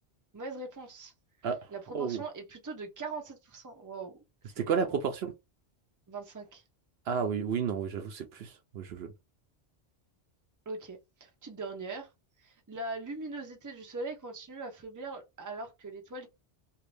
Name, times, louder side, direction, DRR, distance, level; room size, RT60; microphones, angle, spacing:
voice 1, 0.3-1.1 1.7-4.2 4.4-5.0 6.1-6.6 10.7-12.1 12.4-16.3, right 3 dB, 20° right, 0.7 m, -41 dB
voice 2, 4.6-5.3 7.1-9.1, right 6 dB, 70° right, 0.8 m, -31 dB
2.7 x 2.6 x 3.3 m
omnidirectional pair, 1.2 m